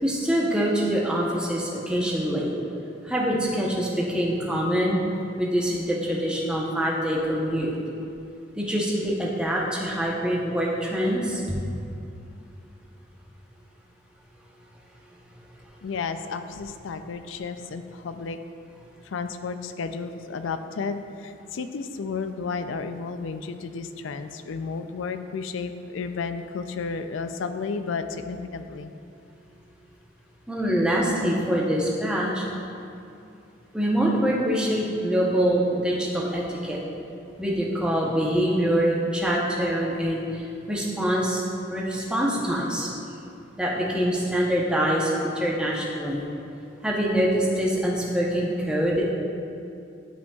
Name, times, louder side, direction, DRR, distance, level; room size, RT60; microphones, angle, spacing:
voice 1, 0.0-2.5 3.0-5.0 5.4-7.7 8.6-11.6 30.5-32.5 33.7-36.8 37.4-40.4 40.7-41.4 41.7-42.9 43.6-46.2 46.8-49.0, equal, 5° right, -4 dB, 0.8 m, -24 dB
voice 2, 15.8-18.4 19.0-28.9, left 4 dB, 85° left, 9 dB, 0.4 m, -32 dB
11.0 x 5.1 x 2.4 m, 2.6 s
head